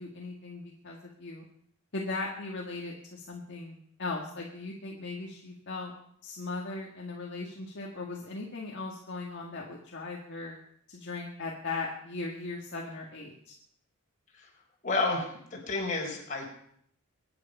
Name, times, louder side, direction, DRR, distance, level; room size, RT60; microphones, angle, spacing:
voice 1, 0.0-1.5 1.9-5.9 6.2-10.6 10.9-13.5, left 3 dB, 55° left, -1 dB, 1.9 m, -38 dB
voice 2, 14.8-16.5, left 3 dB, 35° left, -1 dB, 4.7 m, -31 dB
24.0 x 9.7 x 5.5 m, 0.68 s
head